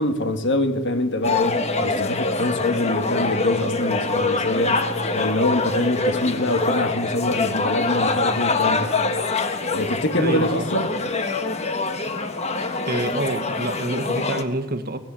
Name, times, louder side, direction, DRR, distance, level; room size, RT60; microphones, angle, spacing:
voice 1, 0.0-8.9 9.6-10.9, left 1 dB, 55° left, 1.8 m, -24 dB
sound 1, 1.2-14.4, left 3 dB, 30° left, 1.4 m, -24 dB
voice 2, 10.2-10.7 12.8-15.0, right 1 dB, 40° right, 1.5 m, -27 dB
24.5 x 18.0 x 7.7 m
head